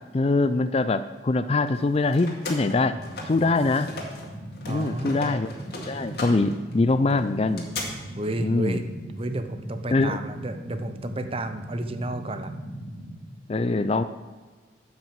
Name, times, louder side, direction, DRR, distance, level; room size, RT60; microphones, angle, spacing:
voice 1, 0.1-2.9 3.3-3.9 4.7-5.5 5.9-7.7 8.4-8.8 9.9-10.2 13.5-14.0, left 3 dB, 35° left, 12 dB, 0.4 m, -23 dB
sound 1, 1.7-4.3 4.5-7.8, left 3 dB, 60° left, 2.1 m, -38 dB
sound 2, 2.6-13.1, right 1 dB, 85° left, 2.8 m, -39 dB
voice 2, 4.7-5.3 8.2-8.8 9.2-12.5, right 2 dB, 30° right, 8 dB, 0.7 m, -31 dB
10.5 x 6.0 x 7.5 m, 1.4 s
head